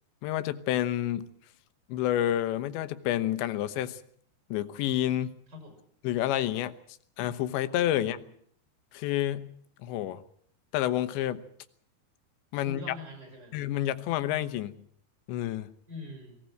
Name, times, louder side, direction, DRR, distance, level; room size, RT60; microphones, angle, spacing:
voice 1, 0.2-1.3 1.9-4.0 4.5-5.4 6.0-6.8 7.2-8.2 8.9-9.5 9.8-10.2 10.7-11.4 12.5-12.8 13.5-14.7 15.3-15.7, left 12 dB, 75° left, 12 dB, 3.2 m, -29 dB
voice 2, 7.9-8.3 12.6-13.6 15.9-16.4, left 2 dB, 20° right, 5 dB, 6.7 m, -44 dB
23.5 x 17.5 x 7.7 m, 0.63 s
omnidirectional pair, 5.4 m